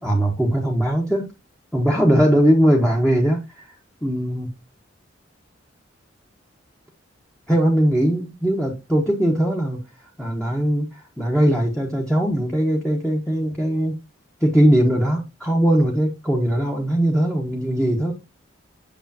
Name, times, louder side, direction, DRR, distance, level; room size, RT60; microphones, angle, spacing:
voice 1, 0.0-1.3 1.7-3.7 4.0-4.5 7.5-13.9 14.4-18.1, equal, 5° left, 1.3 m, -20 dB
8.3 x 6.6 x 2.9 m
head